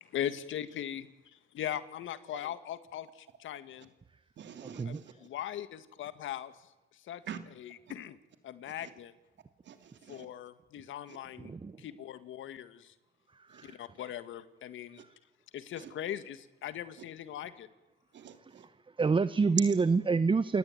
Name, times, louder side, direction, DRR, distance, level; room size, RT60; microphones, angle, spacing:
voice 1, 0.1-1.1 1.5-3.9 5.2-6.5 7.1-7.2 7.9-8.1 8.4-9.1 10.1-11.5 11.8-12.9 13.6-15.0 15.5-16.4 16.6-17.7, left 11 dB, 75° left, 1.9 m, -39 dB
voice 2, 4.4-5.1 7.2-7.4 8.7-8.9 9.6-10.3 11.1-11.2 13.5-13.8 15.0-15.1 15.7-15.9 16.9-17.0 18.1-18.7, right 8 dB, 65° right, 2.9 m, -47 dB
voice 3, 11.4-11.8 13.3-13.8 14.0-14.1 19.0-20.6, right 4 dB, 25° right, 0.8 m, -27 dB
29.0 x 18.5 x 9.3 m
cardioid pair, 90°, 20 cm